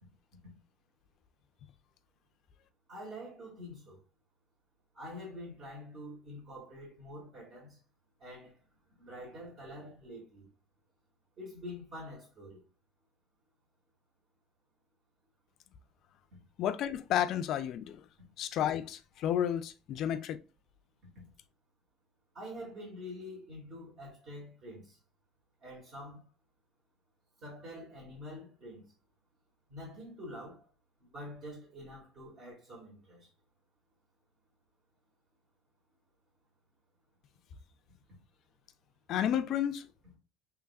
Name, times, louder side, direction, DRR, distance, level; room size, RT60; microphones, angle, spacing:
voice 1, 2.9-4.0 4.9-7.8 8.2-8.5 9.0-10.5 11.4-12.6 22.3-25.0 25.6-26.2 27.4-28.9 29.7-30.6 31.1-33.3, left 1 dB, 50° right, 2.4 m, -46 dB
voice 2, 16.6-18.0 18.4-20.4 39.1-39.9, left 10 dB, 55° left, 0.5 m, -31 dB
6.9 x 3.1 x 2.4 m
cardioid pair, 130°, 0 cm